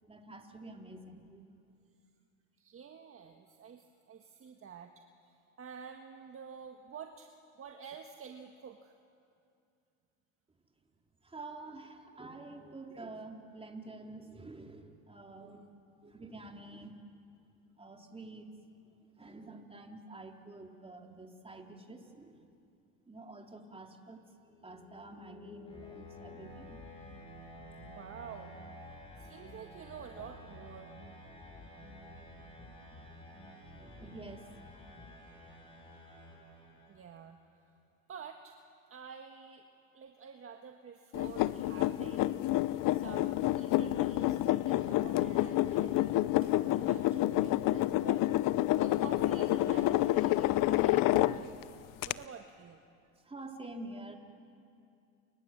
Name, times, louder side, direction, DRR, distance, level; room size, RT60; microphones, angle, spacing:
voice 1, 0.0-1.4 11.2-15.8 16.0-17.0 17.8-18.5 19.1-22.5 23.1-24.2 24.6-26.8 33.8-34.5 53.2-54.2, right 2 dB, 15° right, 2 dB, 3.6 m, -48 dB
voice 2, 2.6-4.9 5.2-7.3 7.6-8.9 27.9-28.5 29.2-30.9 36.9-37.4 38.1-38.6 38.9-39.7 39.9-48.2 48.8-51.6 52.0-52.8, right 7 dB, 35° right, 4 dB, 1.7 m, -49 dB
sound 1, 24.4-37.3, left 1 dB, 15° left, 7.0 m, -52 dB
sound 2, 25.7-35.2, left 2 dB, 30° left, 4.2 m, -55 dB
sound 3, 41.1-51.6 52.0-52.1, left 16 dB, 55° left, 0.9 m, -28 dB
29.5 x 26.0 x 7.6 m, 2.5 s
supercardioid pair, 90°, 39 cm